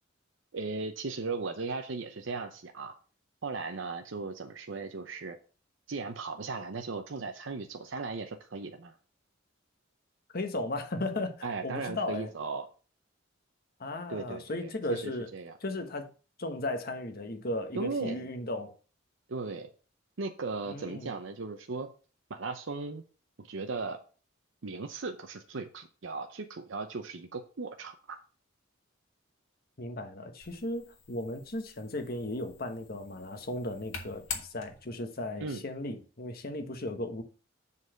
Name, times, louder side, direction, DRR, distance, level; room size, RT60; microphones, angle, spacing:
voice 1, 0.5-2.9 3.4-5.4 5.9-9.0 11.4-12.7 14.1-15.5 17.7-18.3 19.3-19.7 20.2-21.9 22.3-23.0 23.4-24.0 24.6-28.2 35.4-35.6, right 4 dB, 70° right, 0.7 m, -37 dB
voice 2, 10.3-12.3 13.8-15.3 15.6-16.1 16.4-18.7 20.7-21.1 29.8-37.2, left 1 dB, 50° left, 1.2 m, -36 dB
sound 1, 30.4-35.1, left 6 dB, 85° left, 1.6 m, -45 dB
7.3 x 4.1 x 6.4 m
head